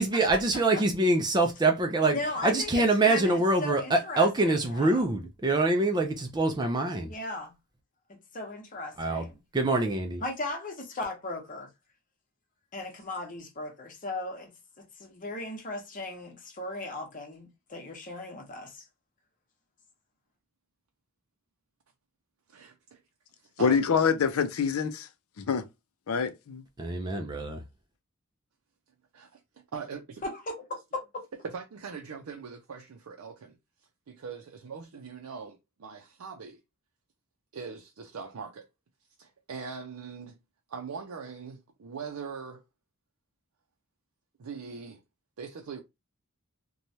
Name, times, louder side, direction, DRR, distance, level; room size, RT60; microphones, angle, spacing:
voice 1, 0.0-7.1 9.0-9.3 9.5-10.2 26.8-27.6, right 2 dB, 20° right, 0.4 m, -25 dB
voice 2, 2.1-3.3 3.6-5.0 7.0-7.5 8.3-9.3 10.2-11.7 12.7-14.5 14.8-18.8 30.2-30.6 30.9-31.0, left 2 dB, 40° left, 0.9 m, -37 dB
voice 3, 22.5-23.0 23.6-23.8 29.1-29.4 29.7-30.2 31.4-33.6 34.1-36.6 37.5-38.7 39.2-40.4 40.7-42.6 44.4-45.0 45.4-45.8, right 5 dB, 75° right, 0.5 m, -41 dB
voice 4, 23.6-25.1 25.4-25.6 26.1-26.6, left 6 dB, 70° left, 0.5 m, -26 dB
3.0 x 2.2 x 2.7 m
head